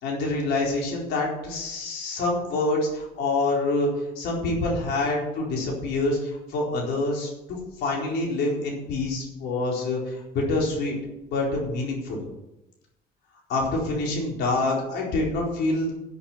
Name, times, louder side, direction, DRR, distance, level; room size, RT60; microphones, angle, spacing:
voice 1, 0.0-3.9 4.2-11.0 11.3-12.2 13.5-15.9, left 2 dB, 85° left, -2 dB, 4.3 m, -26 dB
11.0 x 8.4 x 7.3 m, 0.92 s
cardioid pair, 110°, 17 cm